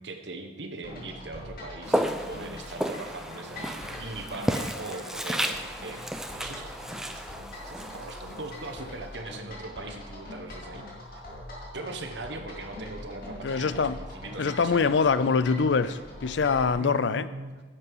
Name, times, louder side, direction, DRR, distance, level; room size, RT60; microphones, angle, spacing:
voice 1, 0.0-6.1 6.4-6.7 7.0-7.3 7.7-10.8 11.1-11.2 11.7-15.1 16.8-17.6, right 2 dB, 70° right, 5 dB, 1.2 m, -40 dB
sound 1, 0.8-16.7, left 1 dB, 50° left, 2.7 m, -43 dB
Walk footsteps, 1.8-9.0, equal, 5° right, 0.5 m, -33 dB
voice 2, 13.4-14.0 14.4-17.3, left 5 dB, 75° left, 14 dB, 0.5 m, -24 dB
11.0 x 7.5 x 4.8 m, 1.4 s
head